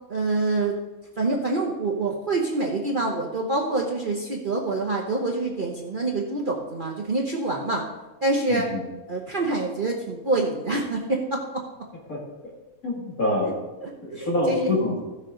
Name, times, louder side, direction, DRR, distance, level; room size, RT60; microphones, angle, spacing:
voice 1, 0.1-0.7 1.2-7.9 8.2-8.7 9.1-11.6 13.8-14.7, right 2 dB, 40° right, -1 dB, 1.0 m, -26 dB
voice 2, 8.5-8.8 12.1-12.2 12.8-13.5 14.0-15.0, left 1 dB, 75° left, -3 dB, 2.7 m, -25 dB
15.0 x 6.5 x 3.8 m, 1.1 s
omnidirectional pair, 1.5 m